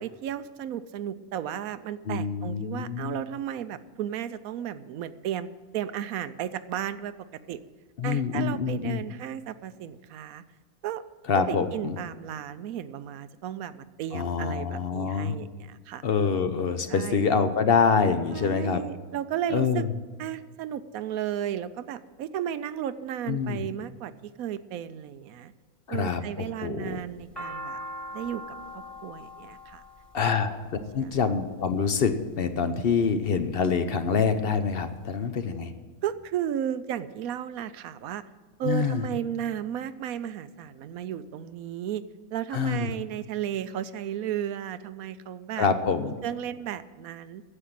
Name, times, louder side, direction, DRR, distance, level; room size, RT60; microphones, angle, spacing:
voice 1, 0.0-5.5 5.7-7.1 7.5-7.6 8.0-10.4 10.8-11.0 11.3-16.0 16.9-17.4 18.3-19.9 20.2-24.1 24.4-25.5 25.9-27.8 28.1-29.8 30.3-30.4 31.0-31.2 36.0-38.2 38.6-42.0 42.3-45.7 46.0-47.4, right 10 dB, 75° right, 14 dB, 1.0 m, -34 dB
voice 2, 2.1-3.2 8.0-9.0 11.3-11.9 14.1-15.4 16.0-18.8 19.5-19.9 23.3-23.7 25.9-27.0 30.1-30.7 30.9-35.7 38.6-39.1 42.5-42.9 45.6-46.1, left 5 dB, 50° left, 9 dB, 0.8 m, -26 dB
sound 1, 26.9-31.1 32.0-32.4 33.0-33.7 34.0-34.1 34.3-35.1, equal, ahead, 1.4 m, -41 dB
9.8 x 7.8 x 8.7 m, 1.5 s
omnidirectional pair, 1.6 m